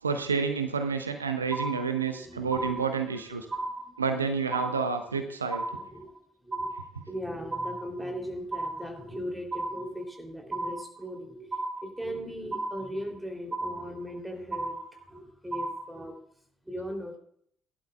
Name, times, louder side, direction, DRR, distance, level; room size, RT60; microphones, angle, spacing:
voice 1, 0.0-3.5 4.0-5.6, right 5 dB, 80° right, 8 dB, 0.6 m, -29 dB
sound 1, 1.5-2.2 2.5-3.2 3.5-4.2 4.5-5.2 5.5-6.2 6.5-7.2 7.5-8.2 8.5-9.2 9.5-10.2 10.5-11.2 11.5-12.2 12.5-13.2 13.5-14.2 14.5-15.2 15.5-16.2, right 2 dB, 25° right, 0.9 m, -35 dB
voice 2, 2.1-2.9 3.3-4.0 5.1-5.3 5.7-6.1 6.4-6.8 7.1-14.8 15.1-16.2 16.7-17.2, equal, 5° right, 3 dB, 3.1 m, -39 dB
16.5 x 11.5 x 2.3 m, 0.66 s
figure-of-eight pair, 50°, 0 cm